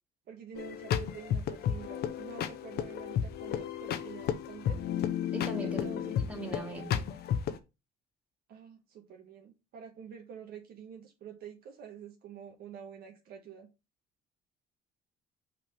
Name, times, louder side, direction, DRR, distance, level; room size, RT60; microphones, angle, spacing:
voice 1, 0.3-4.8 5.6-6.2 6.7-7.0 8.5-13.7, right 8 dB, 65° right, 1.4 m, -48 dB
sound 1, 0.6-7.6, left 9 dB, 70° left, 0.8 m, -33 dB
voice 2, 5.3-7.0, right 1 dB, 5° right, 2.3 m, -40 dB
5.9 x 3.4 x 5.6 m
cardioid pair, 110°, 17 cm